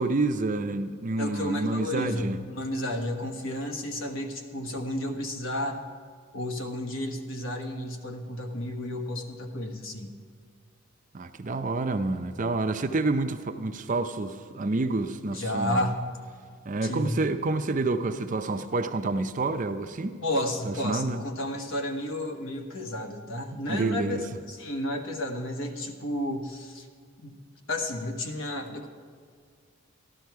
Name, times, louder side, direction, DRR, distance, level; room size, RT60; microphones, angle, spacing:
voice 1, 0.0-2.4 11.1-15.9 16.7-20.2 20.6-21.2 23.7-24.2, right 3 dB, 35° right, 8 dB, 0.5 m, -28 dB
voice 2, 1.2-5.8 6.3-10.1 15.3-16.0 16.8-17.2 20.2-26.9 27.2-27.4 27.7-28.9, left 1 dB, 65° left, 4 dB, 1.3 m, -32 dB
13.5 x 12.5 x 4.6 m, 2.1 s
head